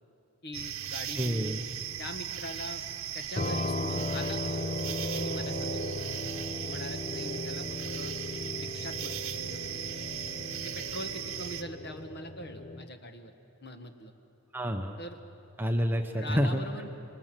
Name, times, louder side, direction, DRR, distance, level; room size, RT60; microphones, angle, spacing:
voice 1, 0.4-1.6 2.0-2.8 3.1-6.0 6.6-8.2 8.6-9.8 10.6-13.3 13.6-14.1 15.0-15.2 16.2-16.9, left 1 dB, 45° left, 6 dB, 1.5 m, -42 dB
sound 1, 0.5-11.6, right 10 dB, 70° right, 1.1 m, -38 dB
voice 2, 1.1-1.7 14.5-15.0 15.6-16.6, equal, 10° right, 4 dB, 0.9 m, -28 dB
sound 2, 3.4-12.9, left 2 dB, 30° left, 0.8 m, -36 dB
26.5 x 24.0 x 7.6 m, 2.7 s
head